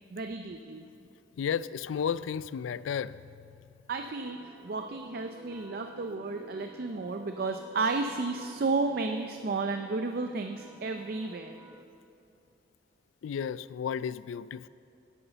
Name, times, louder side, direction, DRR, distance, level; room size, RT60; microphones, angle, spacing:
voice 1, 0.1-0.9 3.9-11.6, right 3 dB, 50° right, 6 dB, 0.5 m, -32 dB
voice 2, 1.4-3.3 13.2-14.7, left 7 dB, 85° left, 18 dB, 0.3 m, -33 dB
sound 1, 4.0-11.9, equal, 15° right, 0.7 m, -52 dB
10.0 x 9.5 x 6.8 m, 2.6 s
head